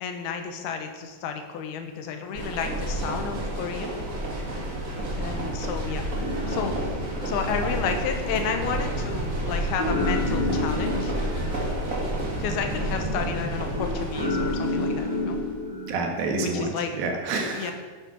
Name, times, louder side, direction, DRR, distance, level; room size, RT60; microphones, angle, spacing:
voice 1, 0.0-4.0 5.1-6.0 6.5-6.9 7.3-11.3 12.4-15.4 16.4-16.9 17.5-17.7, left 6 dB, 70° left, 6 dB, 2.9 m, -31 dB
sound 1, 2.3-15.5, right 1 dB, 85° right, 0.7 m, -30 dB
sound 2, 6.2-16.6, left 2 dB, 30° right, 4.8 m, -32 dB
voice 2, 15.9-17.7, right 3 dB, 65° right, 3 dB, 3.2 m, -28 dB
11.5 x 8.8 x 6.2 m, 1.4 s
omnidirectional pair, 4.9 m